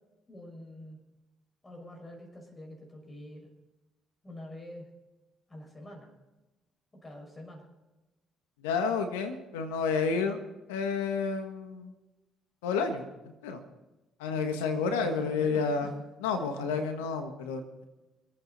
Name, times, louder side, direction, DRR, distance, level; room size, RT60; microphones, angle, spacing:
voice 1, 0.3-1.0 1.6-3.5 4.2-4.9 5.5-6.1 6.9-7.7 14.7-15.9 16.3-16.7, left 1 dB, 25° left, 0 dB, 6.0 m, -46 dB
voice 2, 8.6-10.4 10.7-11.9 12.6-13.6 14.2-15.9 16.2-17.6, left 5 dB, 85° left, 7 dB, 1.4 m, -30 dB
26.0 x 8.9 x 4.1 m, 1.1 s
hypercardioid pair, 55°, 0 cm